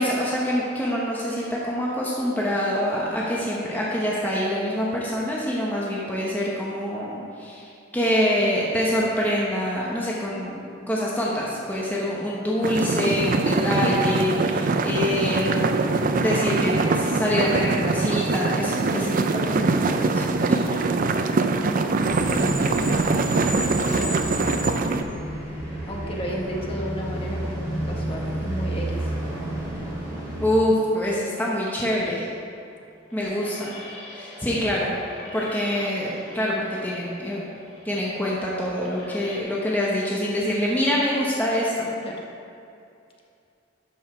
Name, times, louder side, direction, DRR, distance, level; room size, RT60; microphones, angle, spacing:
voice 1, 0.0-15.7 16.2-20.7 30.4-32.3 33.1-33.7 34.1-34.9 35.3-37.4 37.8-41.9, equal, 10° left, -5 dB, 1.0 m, -25 dB
sound 1, 12.6-25.0, right 3 dB, 45° right, 0.4 m, -23 dB
sound 2, 22.0-30.4, right 1 dB, 15° right, 2.0 m, -31 dB
voice 2, 22.2-25.1 25.9-29.1 42.0-42.2, equal, 30° left, -1 dB, 1.2 m, -34 dB
sound 3, 32.3-39.4, left 2 dB, 65° left, 2.1 m, -43 dB
12.0 x 5.5 x 4.4 m, 2.6 s
head